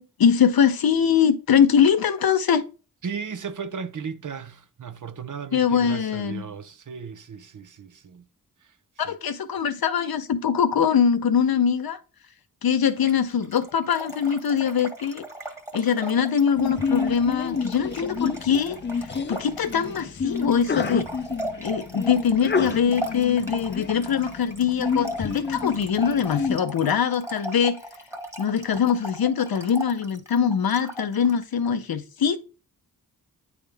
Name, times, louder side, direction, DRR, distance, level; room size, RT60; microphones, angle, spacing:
voice 1, 0.0-2.6 5.5-6.5 9.0-12.0 12.6-15.2 15.7-21.1 21.6-27.8 28.4-32.4, left 7 dB, 80° left, 0.7 m, -22 dB
voice 2, 3.0-8.2 9.1-9.2, right 6 dB, 60° right, 0.7 m, -35 dB
Trickle dribble / Fill (with liquid), 13.0-31.4, equal, 10° right, 1.4 m, -38 dB
Sneeze, 16.6-26.6, left 5 dB, 30° left, 0.5 m, -29 dB
9.2 x 3.6 x 3.4 m
wide cardioid pair, 60°, 36 cm